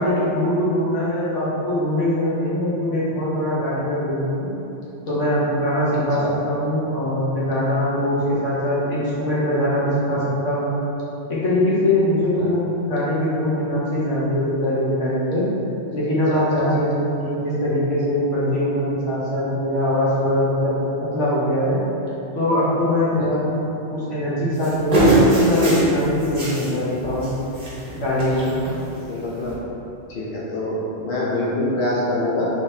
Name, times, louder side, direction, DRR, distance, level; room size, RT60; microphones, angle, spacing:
voice 1, 0.0-4.5 5.0-10.8 11.3-15.5 15.9-20.7 21.1-21.8 22.3-23.6 23.9-27.3 27.9-28.5, left 1 dB, 80° left, -8 dB, 1.2 m, -22 dB
voice 2, 16.3-16.6 23.2-23.3 29.1-29.5 30.1-32.5, left 1 dB, 60° left, -6 dB, 0.8 m, -25 dB
sound 1, 24.6-26.7 27.0-27.3 27.5-27.9 28.2-28.7 29.5-29.6, right 1 dB, 35° right, 0.8 m, -20 dB
3.6 x 3.2 x 2.7 m, 2.9 s
omnidirectional pair, 1.2 m